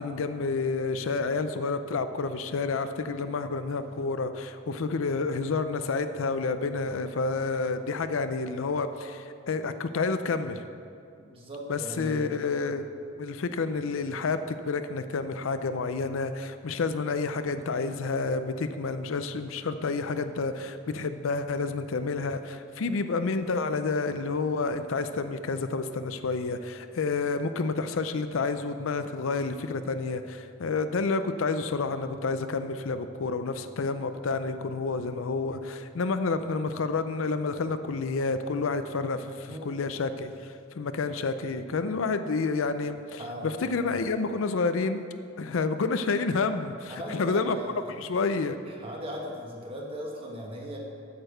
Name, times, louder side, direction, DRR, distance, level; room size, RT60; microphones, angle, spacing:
voice 1, 0.0-10.6 11.7-12.9 13.2-45.0 45.4-47.6 48.0-48.6, left 4 dB, 70° left, 10 dB, 0.5 m, -29 dB
voice 2, 3.1-3.5 11.2-12.7 39.5-39.9 43.2-43.6 46.9-48.1 48.7-50.8, equal, 25° right, -1 dB, 1.5 m, -39 dB
8.8 x 6.8 x 6.5 m, 2.5 s
head